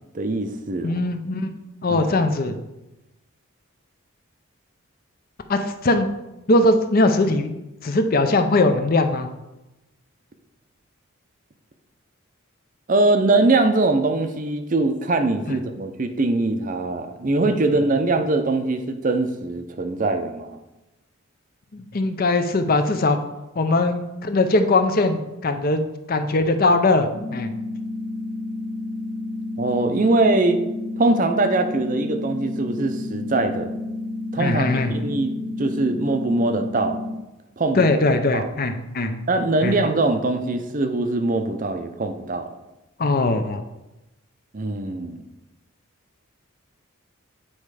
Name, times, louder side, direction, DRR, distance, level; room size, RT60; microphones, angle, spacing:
voice 1, 0.1-0.9 1.9-2.1 12.9-20.6 29.6-30.6 31.0-33.7 34.3-35.3 35.6-37.0 37.6-37.9 38.3-38.5 39.3-42.5 44.5-45.2, right 2 dB, 35° right, 7 dB, 0.6 m, -22 dB
voice 2, 0.8-1.5 1.8-2.6 5.5-6.1 6.5-7.5 7.8-9.3 15.5-15.6 17.7-17.8 21.7-23.2 23.6-25.8 26.1-27.5 34.4-34.9 37.7-39.3 39.6-39.8 43.0-43.6, left 2 dB, 40° left, 8 dB, 0.6 m, -20 dB
sound 1, 27.1-37.1, left 2 dB, 75° left, 1.1 m, -31 dB
8.8 x 4.3 x 4.8 m, 0.98 s
head